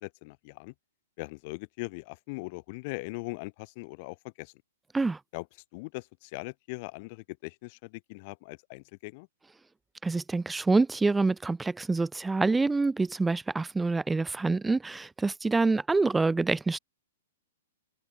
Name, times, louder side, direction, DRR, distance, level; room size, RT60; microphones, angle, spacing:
voice 1, 0.0-0.7 1.2-4.5 5.3-5.4 5.7-9.3, left 27 dB, 45° left, 1.6 m, -40 dB
voice 2, 10.0-16.8, right 3 dB, 5° right, 0.5 m, -26 dB
open air
hypercardioid pair, 135°, 0 cm